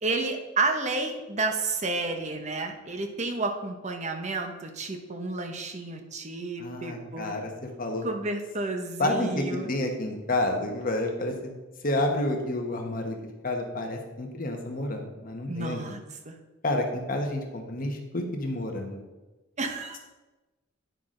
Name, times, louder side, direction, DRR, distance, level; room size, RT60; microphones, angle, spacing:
voice 1, 0.0-7.3 8.0-9.7 15.5-16.0 16.3-16.4 19.6-20.0, right 3 dB, 35° right, 5 dB, 0.8 m, -31 dB
voice 2, 6.6-8.0 9.0-11.5 11.8-13.2 13.4-15.8 16.6-19.0, left 1 dB, 40° left, 3 dB, 1.2 m, -29 dB
9.3 x 5.9 x 3.8 m, 1.1 s
head